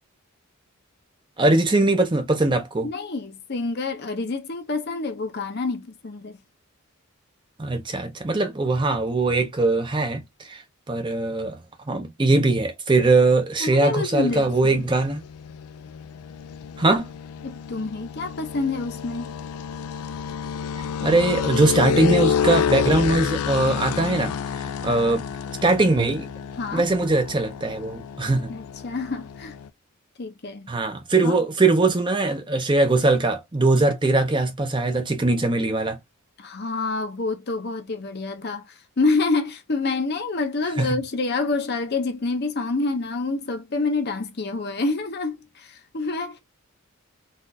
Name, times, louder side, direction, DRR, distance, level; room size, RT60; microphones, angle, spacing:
voice 1, 1.4-2.9 7.6-10.2 10.5-10.6 10.9-11.6 11.9-15.2 16.8-17.1 21.0-24.3 24.8-25.2 25.6-26.3 26.7-28.5 30.7-36.0 40.8-41.0, right 2 dB, 20° right, 0.6 m, -21 dB
voice 2, 2.8-6.4 13.6-14.8 17.4-19.3 26.6-26.9 28.5-29.5 30.2-30.7 31.2-31.4 36.4-46.4, left 3 dB, 45° left, 0.6 m, -27 dB
sound 1, 14.1-29.7, left 7 dB, 80° left, 0.3 m, -29 dB
4.0 x 2.5 x 2.6 m
head